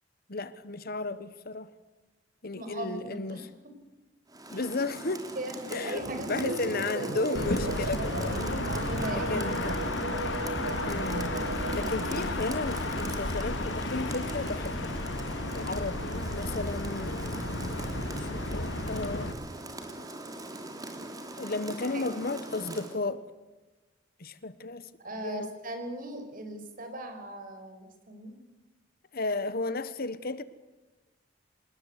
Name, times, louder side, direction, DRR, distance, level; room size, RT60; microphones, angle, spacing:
voice 1, 0.3-1.7 2.4-3.5 4.5-5.3 5.7-8.7 9.2-9.7 10.9-11.4 11.7-15.0 15.5-17.3 18.2-19.3 21.4-23.2 24.2-24.9 25.2-25.5 29.1-30.4, left 3 dB, 55° left, 1.3 m, -34 dB
voice 2, 2.5-3.7 5.3-7.1 8.9-9.5 21.9-22.1 25.0-28.5, right 1 dB, 50° right, 5.4 m, -39 dB
Rain, 4.3-23.0, right 1 dB, 20° right, 3.3 m, -41 dB
sound 1, 6.0-12.4, right 3 dB, 80° right, 1.5 m, -37 dB
sound 2, 7.3-19.3, left 2 dB, 75° left, 2.5 m, -33 dB
27.0 x 20.5 x 8.3 m
head